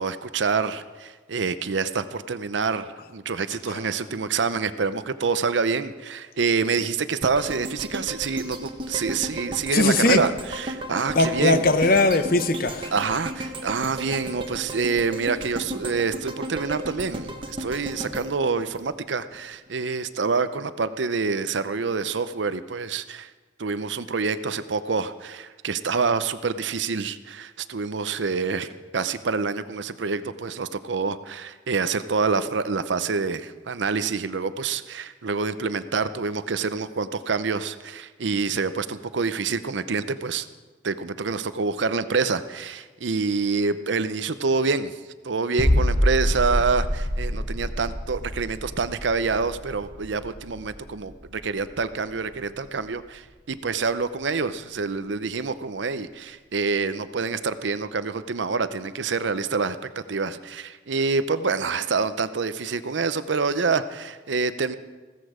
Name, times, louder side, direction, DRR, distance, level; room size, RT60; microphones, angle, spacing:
voice 1, 0.0-11.7 12.9-23.3 23.6-40.5 40.8-45.0 45.2-64.8, right 4 dB, 75° right, 13 dB, 0.7 m, -27 dB
sound 1, 7.2-19.4 19.8-19.9, right 1 dB, 30° right, 1.3 m, -35 dB
voice 2, 9.7-10.2 11.1-12.9, left 2 dB, 50° left, 10 dB, 0.9 m, -20 dB
sound 2, 45.6-51.3 51.5-51.8, equal, 25° left, 4.9 m, -26 dB
16.0 x 14.5 x 5.0 m, 1.3 s
head